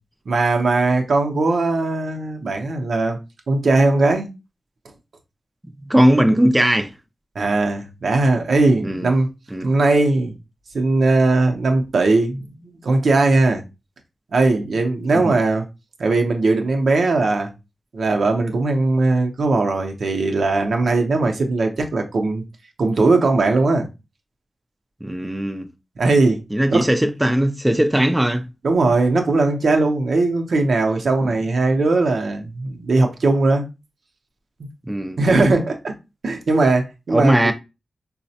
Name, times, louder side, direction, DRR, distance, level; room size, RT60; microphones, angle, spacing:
voice 1, 0.3-3.2 3.5-4.3 7.4-9.3 9.6-10.4 10.7-13.6 14.3-15.6 16.0-17.5 17.9-22.4 22.8-23.9 26.0-26.4 26.7-26.8 28.6-33.6 35.2-35.9 36.2-37.4, right 3 dB, 75° right, 0.6 m, -19 dB
voice 2, 5.8-6.9 8.8-9.1 9.5-9.7 15.2-15.3 25.0-25.7 26.5-28.5 31.2-31.3 34.9-35.2 37.1-37.5, equal, 10° right, 0.3 m, -18 dB
4.0 x 2.0 x 2.7 m
wide cardioid pair, 95°, 0 cm